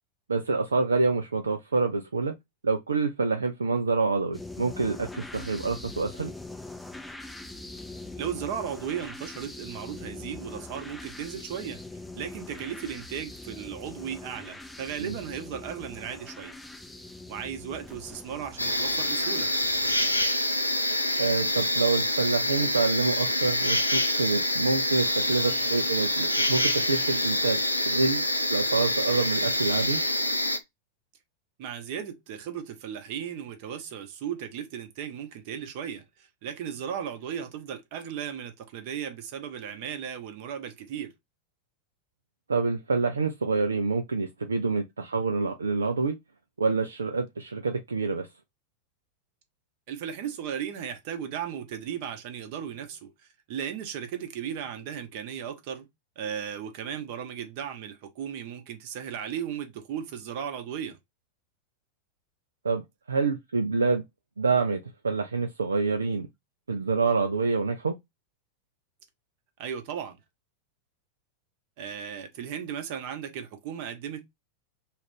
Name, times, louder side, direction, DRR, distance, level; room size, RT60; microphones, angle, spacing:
voice 1, 0.3-2.3 2.6-6.3 15.0-15.1 21.2-28.2 28.5-30.0 42.5-46.2 46.6-48.3 62.6-62.8 63.1-64.0 64.4-66.3 66.7-67.9, right 4 dB, 75° right, 0.3 m, -27 dB
sound 1, 4.3-20.3, left 2 dB, 5° left, 0.5 m, -43 dB
voice 2, 8.2-11.8 12.2-16.6 17.3-19.5 25.5-25.6 31.6-41.1 49.9-53.1 53.5-55.9 56.2-61.0 69.6-70.2 71.8-74.2, right 8 dB, 45° right, 0.7 m, -36 dB
sound 2, 18.6-30.6, left 1 dB, 85° left, 0.4 m, -26 dB
2.4 x 2.4 x 3.2 m
figure-of-eight pair, 90°, 0 cm